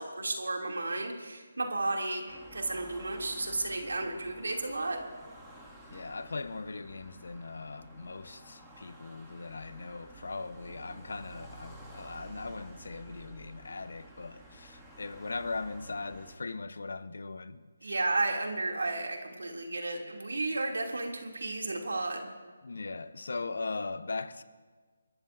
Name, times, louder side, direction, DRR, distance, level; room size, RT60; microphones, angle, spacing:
voice 1, 0.0-5.0 17.8-22.3, right 2 dB, 80° right, 2.7 m, -33 dB
sound 1, 2.3-16.4, right 1 dB, 5° right, 2.1 m, -52 dB
voice 2, 5.9-17.9 22.6-24.4, left 3 dB, 70° left, 0.9 m, -39 dB
28.5 x 13.0 x 2.7 m
figure-of-eight pair, 160°, 0 cm